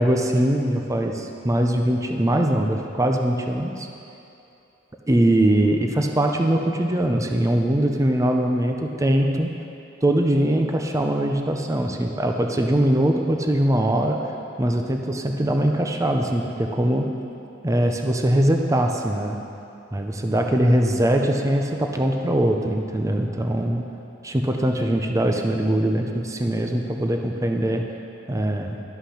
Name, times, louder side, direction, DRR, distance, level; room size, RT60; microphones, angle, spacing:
voice 1, 0.0-3.9 5.1-9.5 10.0-14.2 14.6-17.1 17.6-19.4 19.9-23.8 24.2-27.8 28.3-28.8, right 1 dB, 15° right, 3 dB, 0.5 m, -22 dB
11.5 x 5.7 x 5.7 m, 2.8 s
head